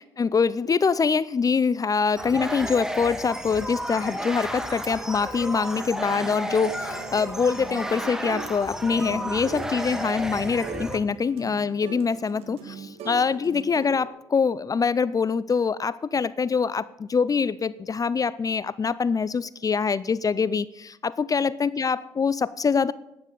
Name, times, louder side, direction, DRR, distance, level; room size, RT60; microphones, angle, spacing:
voice 1, 0.0-22.9, left 5 dB, 35° left, 19 dB, 0.6 m, -24 dB
sound 1, 2.2-11.0, equal, 5° right, 2.2 m, -32 dB
sound 2, 5.7-8.6 8.8-14.1, right 6 dB, 70° right, 2.1 m, -41 dB
12.0 x 9.9 x 8.3 m, 0.92 s
hypercardioid pair, 50°, 10 cm